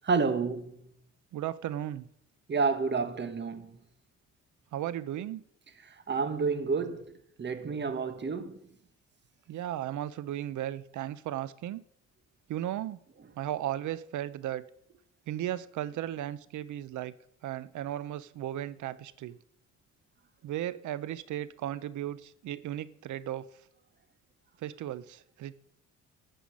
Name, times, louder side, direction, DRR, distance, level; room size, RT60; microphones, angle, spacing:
voice 1, 0.0-0.6 2.5-3.7 6.1-7.0 7.4-8.6, right 4 dB, 35° right, 1.6 m, -29 dB
voice 2, 1.3-2.1 4.7-5.4 9.5-11.8 12.5-13.0 13.4-14.6 15.3-17.1 17.4-19.4 20.4-23.6 24.6-25.5, right 12 dB, 75° right, 0.8 m, -35 dB
14.5 x 5.8 x 9.7 m
cardioid pair, 90°, 30 cm